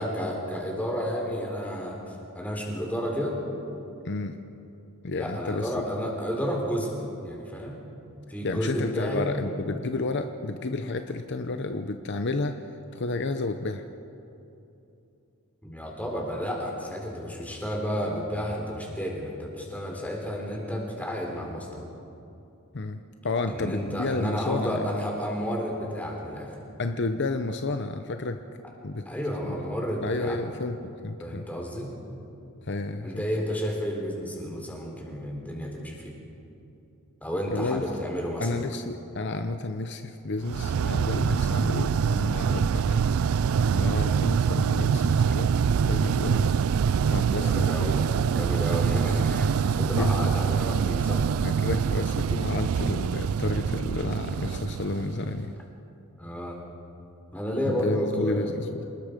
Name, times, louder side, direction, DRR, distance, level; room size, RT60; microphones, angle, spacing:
voice 1, 0.0-3.4 5.2-7.8 8.3-9.3 15.6-21.8 23.5-26.6 29.1-30.4 31.2-31.9 33.0-36.1 37.2-38.5 47.3-51.3 56.2-56.6 57.3-58.5, equal, 5° left, -1 dB, 3.9 m, -31 dB
voice 2, 4.0-4.4 5.0-5.8 8.4-13.8 22.7-24.8 26.8-28.4 28.8-29.1 30.0-31.5 32.6-33.3 37.5-37.8 38.4-43.0 43.7-46.7 47.1-48.0 49.9-50.1 51.4-55.5 57.7-58.8, left 3 dB, 55° left, 7 dB, 0.8 m, -31 dB
sound 1, 40.5-55.5, right 6 dB, 75° right, 0.4 m, -25 dB
27.5 x 20.0 x 5.2 m, 2.8 s
head